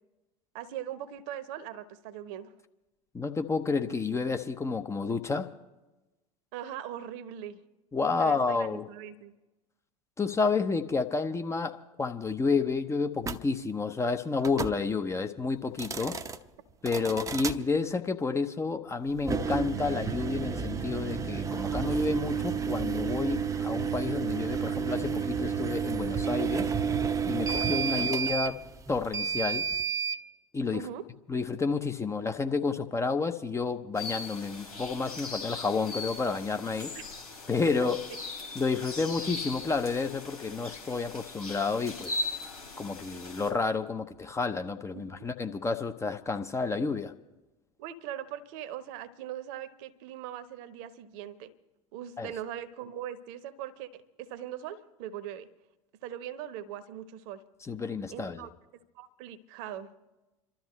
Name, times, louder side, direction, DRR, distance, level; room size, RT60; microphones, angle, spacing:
voice 1, 0.5-2.5 6.5-7.6 8.2-9.3 27.8-28.0 30.7-31.0 36.9-37.0 44.9-45.3 47.8-51.5 51.9-55.5 56.0-57.4 58.1-58.5 58.9-59.9, right 10 dB, 50° right, 1.0 m, -40 dB
voice 2, 3.1-5.5 7.9-8.9 10.2-16.2 16.8-26.7 27.3-28.6 28.9-29.6 30.5-30.9 31.3-36.9 37.5-38.0 38.5-42.2 42.8-47.1 52.2-52.3 57.7-58.5, left 4 dB, 15° left, 0.8 m, -30 dB
sound 1, 13.2-13.4 14.4-14.8 15.7-16.4 16.9-17.6 19.2-30.2, right 6 dB, 15° right, 0.8 m, -31 dB
sound 2, 34.0-43.5, left 3 dB, 85° left, 3.3 m, -39 dB
28.5 x 13.0 x 3.2 m
figure-of-eight pair, 80°, 19 cm